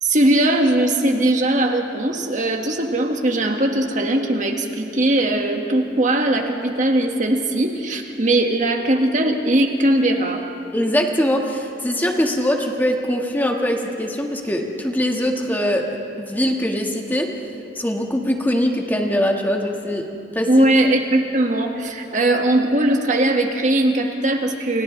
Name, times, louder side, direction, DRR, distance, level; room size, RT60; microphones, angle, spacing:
voice 1, 0.0-10.4 20.5-24.8, right 1 dB, 45° right, 3 dB, 1.8 m, -19 dB
voice 2, 10.7-17.3 17.7-20.0 20.3-20.6, equal, 10° left, 1 dB, 1.7 m, -22 dB
29.0 x 28.5 x 3.3 m, 2.8 s
head